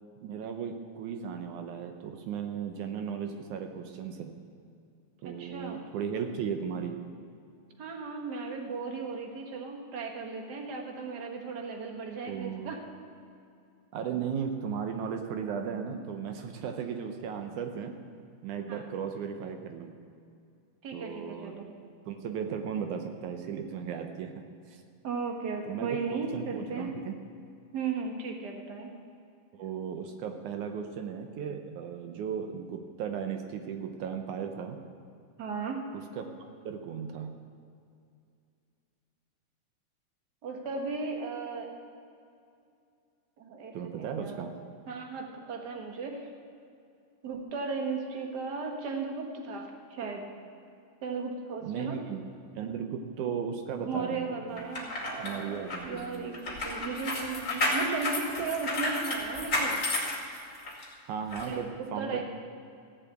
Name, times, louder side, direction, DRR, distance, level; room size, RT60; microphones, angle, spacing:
voice 1, 0.2-4.4 5.2-7.0 12.3-12.7 13.9-17.9 18.4-19.9 20.9-21.5 22.1-24.8 25.7-26.0 26.3-27.1 29.6-34.8 35.9-36.3 36.6-37.3 43.7-44.5 51.6-52.2 52.6-54.6 55.2-56.2 61.1-62.2, right 7 dB, 75° right, 6 dB, 2.1 m, -36 dB
voice 2, 5.2-5.8 7.8-12.8 18.7-18.8 20.8-21.6 25.0-26.9 27.7-28.9 35.4-35.8 40.4-41.7 43.4-43.7 44.2-44.4 44.9-46.3 47.2-50.2 51.0-52.0 53.8-56.3 56.6-59.8 61.4-62.2, right 4 dB, 50° right, 2 dB, 1.3 m, -36 dB
sound 1, 54.6-60.8 61.3-61.5, left 2 dB, 30° left, 2.3 m, -32 dB
15.5 x 7.5 x 8.1 m, 2.4 s
omnidirectional pair, 3.8 m